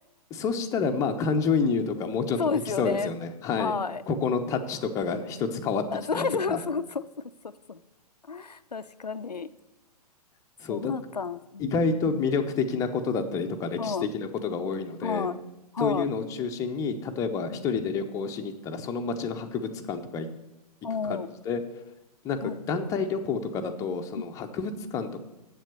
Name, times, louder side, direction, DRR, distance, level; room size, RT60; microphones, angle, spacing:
voice 1, 0.3-2.4 2.8-3.7 4.1-5.8 6.1-6.6 10.6-10.9 11.6-15.3 15.8-20.3 21.0-21.2 21.5-21.6 22.2-25.2, left 5 dB, 15° left, 5 dB, 0.6 m, -29 dB
voice 2, 2.4-3.1 3.6-4.0 5.9-7.8 8.3-9.5 10.7-12.2 13.8-14.1 15.0-15.4 15.7-16.1 17.5-17.7 20.8-21.3 22.4-22.6 24.1-24.3, left 5 dB, 85° left, 12 dB, 0.4 m, -31 dB
7.5 x 7.3 x 6.6 m, 0.98 s
figure-of-eight pair, 110°, 20 cm